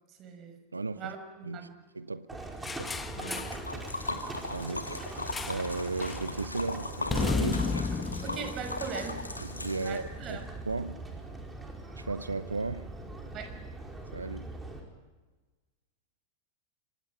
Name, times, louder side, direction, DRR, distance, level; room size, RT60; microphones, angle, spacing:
voice 1, 0.2-0.6 1.0-1.8 3.2-3.5 8.2-9.2 9.8-10.4 13.3-13.6, right 6 dB, 35° right, 5.4 m, -40 dB
voice 2, 0.7-1.1 1.4-1.7 1.9-2.4 2.8-3.0 4.5-4.9 5.5-7.7 9.4-11.0 12.0-12.9 14.1-14.5, right 3 dB, 80° right, 0.8 m, -35 dB
Livestock farm animals working animals, 2.3-14.8, right 2 dB, 10° right, 5.1 m, -42 dB
sound 1, 2.6-3.7 5.3-5.7 6.0-6.3 7.1-9.4, left 4 dB, 15° left, 1.3 m, -33 dB
Liquid, 3.2-10.3, left 2 dB, 80° left, 2.3 m, -38 dB
26.0 x 25.5 x 6.0 m
figure-of-eight pair, 90°, 0 cm